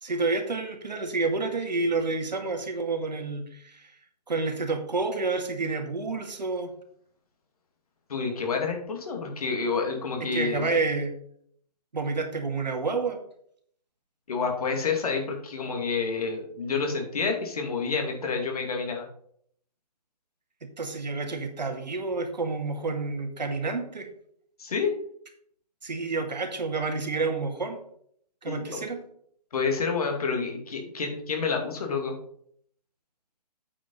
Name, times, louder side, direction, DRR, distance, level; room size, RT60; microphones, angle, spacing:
voice 1, 0.0-3.9 4.3-6.7 10.2-11.1 11.9-13.2 20.6-24.1 25.8-27.8 28.4-29.0, right 3 dB, 85° right, 4 dB, 2.2 m, -29 dB
voice 2, 8.1-10.7 14.3-19.1 24.6-24.9 28.5-28.8 29.5-32.1, left 5 dB, 60° left, 2 dB, 2.4 m, -29 dB
8.4 x 5.3 x 5.5 m, 0.65 s
hypercardioid pair, 150°, 21 cm